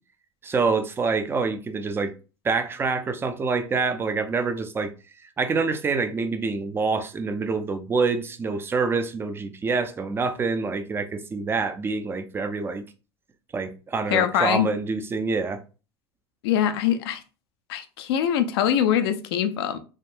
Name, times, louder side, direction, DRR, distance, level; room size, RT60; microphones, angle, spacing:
voice 1, 0.4-2.1 2.4-4.9 5.4-12.8 13.5-15.6, right 4 dB, 15° right, 0.4 m, -26 dB
voice 2, 14.1-14.7 16.4-17.2 17.7-19.8, left 10 dB, 75° left, 0.5 m, -23 dB
3.6 x 2.1 x 2.5 m
hypercardioid pair, 105°, 13 cm